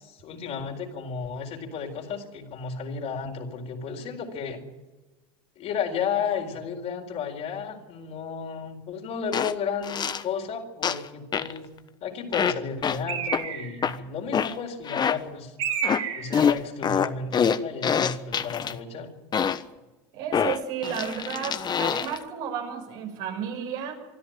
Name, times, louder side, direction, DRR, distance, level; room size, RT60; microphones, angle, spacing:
voice 1, 0.0-4.6 5.6-11.7 12.0-15.6 16.1-19.1, left 6 dB, 55° left, 2 dB, 4.4 m, -33 dB
sound 1, 9.3-9.5 9.8-10.2 10.8-11.1 11.3-11.6 12.3-12.5 12.8-13.0 13.3-13.4 13.8-14.0 14.3-14.5 14.8-15.2 15.8-16.0 16.3-18.7 19.3-19.6 20.3-22.2, left 7 dB, 35° left, 1.1 m, -25 dB
Bird, 13.1-13.9 15.6-16.5, right 8 dB, 50° right, 4.3 m, -30 dB
voice 2, 20.1-24.0, right 8 dB, 70° right, 3 dB, 6.0 m, -32 dB
24.5 x 12.5 x 9.3 m, 1.2 s
supercardioid pair, 95°, 13 cm